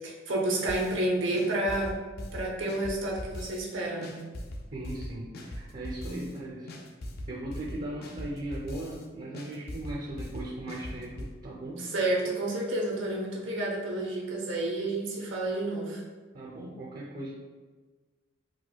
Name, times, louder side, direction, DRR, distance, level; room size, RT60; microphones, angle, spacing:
voice 1, 0.0-2.0 2.3-4.2 11.8-16.0, right 1 dB, 90° right, -2 dB, 0.7 m, -30 dB
sound 1, 0.7-1.1 1.3-3.7 4.0-6.4 6.7-9.0 9.3-11.3, left 1 dB, 55° left, 0.4 m, -40 dB
voice 2, 4.7-6.7 7.3-11.8 16.3-17.3, right 1 dB, 45° right, -4 dB, 0.5 m, -38 dB
4.6 x 2.2 x 2.3 m, 1.4 s
head